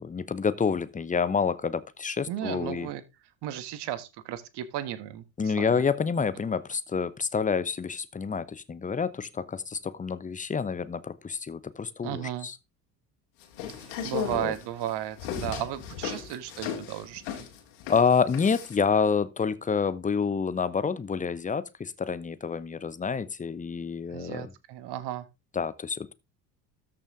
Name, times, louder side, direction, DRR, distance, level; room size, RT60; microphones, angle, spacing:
voice 1, 0.0-2.9 5.4-12.6 14.3-14.5 17.9-24.5 25.5-26.1, left 5 dB, 15° left, 0.8 m, -28 dB
voice 2, 2.3-3.0 3.4-5.8 12.0-12.5 13.7-17.4 24.1-25.2, right 11 dB, 55° right, 1.5 m, -35 dB
sound 1, 13.4-18.8, left 8 dB, 65° left, 2.5 m, -36 dB
13.5 x 5.9 x 3.7 m
hypercardioid pair, 65°, 49 cm